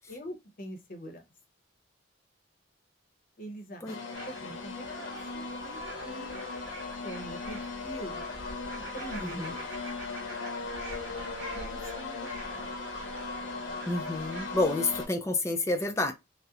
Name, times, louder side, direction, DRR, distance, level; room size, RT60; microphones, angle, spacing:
voice 1, 0.1-1.2 3.4-4.0 4.2-5.8 6.0-6.3 7.0-8.2 8.8-9.5 11.5-12.7, equal, 45° left, 0.7 m, -43 dB
sound 1, 3.9-15.1, left 3 dB, 85° left, 0.7 m, -38 dB
sound 2, 4.1-14.6, equal, 65° right, 1.2 m, -45 dB
voice 2, 9.2-9.5 13.9-16.1, left 2 dB, 15° left, 0.4 m, -29 dB
2.8 x 2.0 x 2.3 m
head